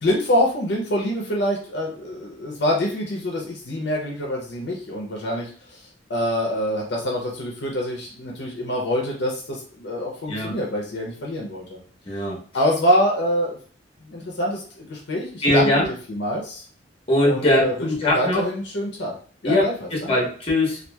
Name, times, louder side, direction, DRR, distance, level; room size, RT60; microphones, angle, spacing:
voice 1, 0.0-5.8 6.1-11.8 12.5-13.6 14.1-15.7 16.1-16.6 17.2-19.1 19.4-20.1, equal, 60° left, -2 dB, 0.6 m, -25 dB
voice 2, 12.1-12.4 15.4-15.9 17.1-18.5 19.4-20.8, left 1 dB, 30° left, -3 dB, 0.8 m, -21 dB
2.8 x 2.4 x 2.2 m, 0.42 s
head